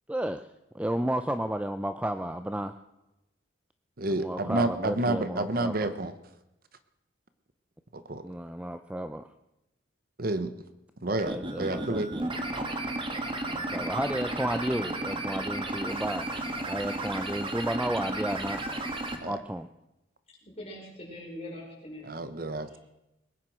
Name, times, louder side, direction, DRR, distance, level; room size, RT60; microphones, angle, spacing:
voice 1, 0.1-0.5 0.7-2.7 4.2-5.7 8.2-9.3 11.1-12.3 13.5-16.3 16.6-18.6 19.2-19.7, right 1 dB, 5° right, 9 dB, 0.5 m, -32 dB
voice 2, 4.0-6.1 7.9-8.3 10.2-10.5 11.0-12.1 19.2-19.4 22.0-22.8, right 2 dB, 45° right, 12 dB, 0.9 m, -30 dB
sound 1, 11.2-19.2, right 2 dB, 25° right, 1.5 m, -33 dB
voice 3, 20.4-22.2, left 1 dB, 30° left, -3 dB, 5.4 m, -42 dB
20.5 x 9.4 x 6.2 m, 0.92 s
head